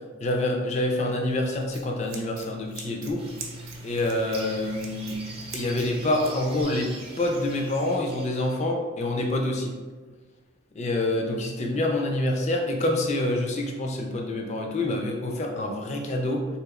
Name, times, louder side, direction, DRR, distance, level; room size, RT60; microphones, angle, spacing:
voice 1, 0.2-3.2 3.8-5.2 5.5-9.7 10.7-16.5, left 1 dB, 30° left, 1 dB, 0.4 m, -27 dB
Scissors, 1.2-6.6, right 2 dB, 70° right, 0.5 m, -41 dB
sound 1, 3.2-8.6, right 2 dB, 25° right, 0.5 m, -43 dB
3.5 x 2.9 x 2.4 m, 1.4 s
head